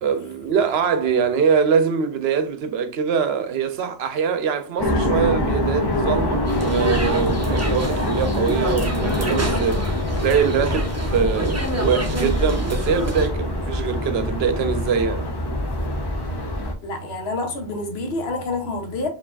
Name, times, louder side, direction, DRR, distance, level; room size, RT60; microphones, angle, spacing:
voice 1, 0.0-15.3, right 6 dB, 75° right, 0.8 m, -23 dB
sound 1, 4.8-16.7, left 1 dB, 30° left, 0.5 m, -24 dB
sound 2, 6.5-13.3, right 1 dB, 20° right, 0.5 m, -29 dB
voice 2, 16.8-19.1, left 2 dB, 75° left, 1.1 m, -27 dB
4.5 x 2.8 x 2.4 m
omnidirectional pair, 1.1 m